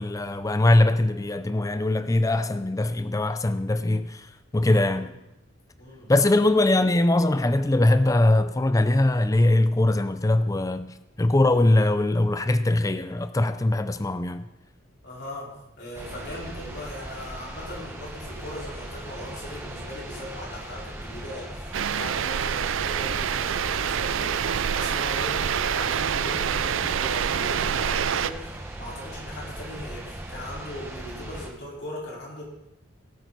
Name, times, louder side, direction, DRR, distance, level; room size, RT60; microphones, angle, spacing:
voice 1, 0.0-4.3 4.5-5.1 6.1-14.5, left 2 dB, 15° left, 0.5 m, -21 dB
voice 2, 4.7-5.1 5.8-6.1 15.0-32.4, left 1 dB, 55° left, 4.5 m, -39 dB
sound 1, 15.9-31.5, right 1 dB, 10° right, 1.2 m, -39 dB
sound 2, 21.7-28.3, right 8 dB, 70° right, 0.4 m, -26 dB
17.5 x 9.2 x 4.0 m
head